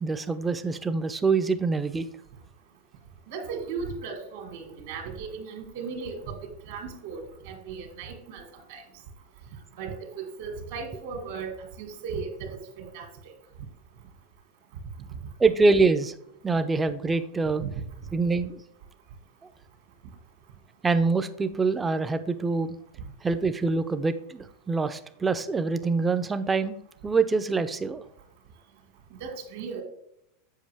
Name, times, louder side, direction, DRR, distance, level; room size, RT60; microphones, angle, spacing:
voice 1, 0.0-2.1 15.4-16.1 16.4-17.6 18.1-18.6 20.8-22.8 23.2-26.8 27.0-28.0, right 4 dB, 10° right, 10 dB, 0.4 m, -25 dB
voice 2, 3.3-6.4 6.7-8.4 8.7-8.8 9.8-11.5 11.8-13.1 17.6-17.7 29.2-29.8, right 5 dB, 70° right, 4 dB, 1.9 m, -36 dB
7.4 x 5.1 x 3.4 m, 0.77 s
supercardioid pair, 145°, 0 cm